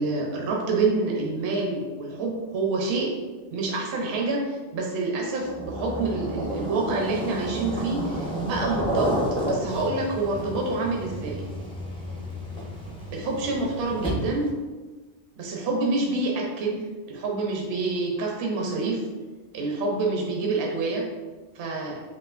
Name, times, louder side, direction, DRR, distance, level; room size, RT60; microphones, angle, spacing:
voice 1, 0.0-3.1 3.5-11.4 13.1-14.5 15.4-19.0 19.5-21.0 21.5-22.0, right 3 dB, 60° right, -1 dB, 0.9 m, -27 dB
sound 1, 5.4-14.5, right 1 dB, 5° left, 0.5 m, -31 dB
5.7 x 2.7 x 2.5 m, 1.3 s
omnidirectional pair, 1.3 m